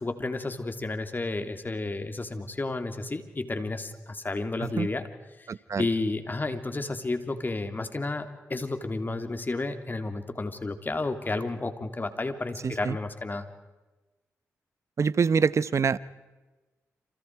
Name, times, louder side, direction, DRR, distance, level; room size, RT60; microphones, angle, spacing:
voice 1, 0.0-5.0 5.4-5.5 5.8-13.5, left 2 dB, 35° left, 8 dB, 3.2 m, -31 dB
voice 2, 5.5-5.9 12.6-13.0 15.0-16.0, right 6 dB, 55° right, 18 dB, 1.0 m, -25 dB
28.5 x 27.5 x 4.8 m, 1.1 s
supercardioid pair, 50°, 6 cm